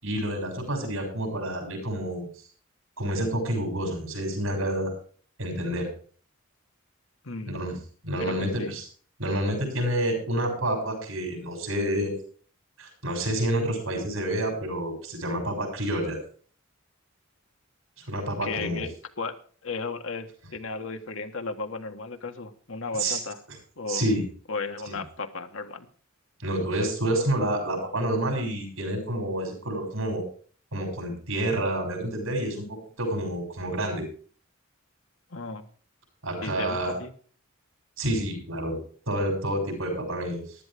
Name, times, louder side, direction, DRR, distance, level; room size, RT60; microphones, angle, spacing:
voice 1, 0.0-2.3 3.0-4.9 5.4-5.9 7.5-7.8 8.0-8.8 9.2-12.1 12.8-16.2 18.0-18.8 23.0-23.2 23.9-24.2 24.9-25.0 26.4-30.2 30.7-34.0 36.2-36.9 38.0-38.8 39.1-40.4, right 1 dB, 80° right, 3 dB, 6.7 m, -28 dB
voice 2, 7.2-7.6 8.2-8.7 18.4-19.3 19.6-23.4 23.8-24.1 24.5-25.9 35.3-35.7 36.4-37.1, left 3 dB, 70° left, 6 dB, 1.6 m, -35 dB
15.0 x 12.5 x 3.6 m, 0.43 s
head